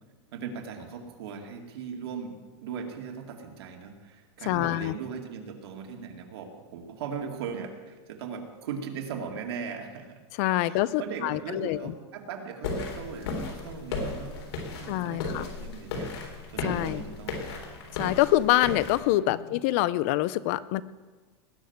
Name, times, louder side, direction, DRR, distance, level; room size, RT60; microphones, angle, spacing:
voice 1, 0.3-10.2 10.6-14.4 14.7-16.2 16.5-17.6 19.2-19.6, right 6 dB, 65° right, 3 dB, 2.3 m, -39 dB
voice 2, 4.4-4.9 10.4-11.9 14.9-15.5 16.6-17.0 17.9-20.8, left 16 dB, 30° left, 18 dB, 0.4 m, -26 dB
sound 1, 12.6-19.0, left 3 dB, 65° left, 3.9 m, -35 dB
19.5 x 6.5 x 9.3 m, 1.4 s
supercardioid pair, 175°, 14 cm